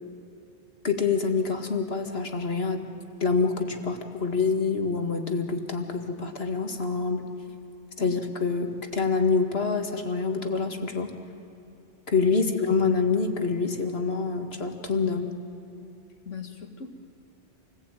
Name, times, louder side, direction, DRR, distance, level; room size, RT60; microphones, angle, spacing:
voice 1, 0.8-2.8 3.2-7.3 8.0-11.1 12.1-15.3, left 4 dB, 55° left, 5 dB, 2.2 m, -26 dB
voice 2, 16.3-16.9, left 4 dB, 85° left, 5 dB, 2.3 m, -39 dB
28.0 x 19.5 x 9.1 m, 2.8 s
omnidirectional pair, 1.2 m